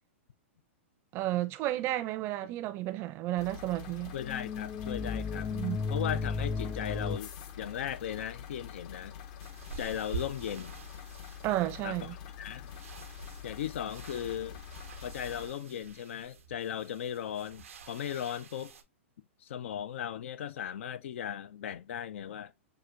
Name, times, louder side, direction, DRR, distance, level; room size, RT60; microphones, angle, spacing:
voice 1, 1.1-4.1 5.5-5.8 11.4-12.1, right 15 dB, 35° right, 0.5 m, -32 dB
sound 1, 3.4-15.5, left 8 dB, 45° left, 0.7 m, -46 dB
voice 2, 4.1-5.5 5.9-9.2 9.8-10.8 11.8-12.1 12.4-12.7 13.4-14.6 15.0-18.7 19.4-22.5, left 9 dB, 70° left, 0.5 m, -37 dB
sound 2, 4.2-7.2, left 5 dB, 10° left, 0.3 m, -34 dB
sound 3, 9.4-18.8, right 5 dB, 90° right, 0.7 m, -47 dB
6.0 x 2.5 x 2.4 m
hypercardioid pair, 130°, 7 cm